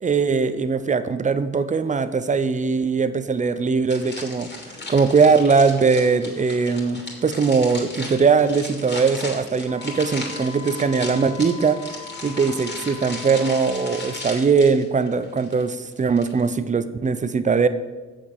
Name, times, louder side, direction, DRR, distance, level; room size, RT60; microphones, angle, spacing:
voice 1, 0.0-4.5 4.9-11.8 12.2-17.7, right 5 dB, 25° right, 12 dB, 0.6 m, -20 dB
sound 1, 3.9-16.5, left 2 dB, 35° left, 2.9 m, -36 dB
Wind instrument woodwind instrument, 9.7-14.5, left 10 dB, 55° left, 1.2 m, -41 dB
7.4 x 7.0 x 6.5 m, 1.3 s
cardioid pair, 90°, 30 cm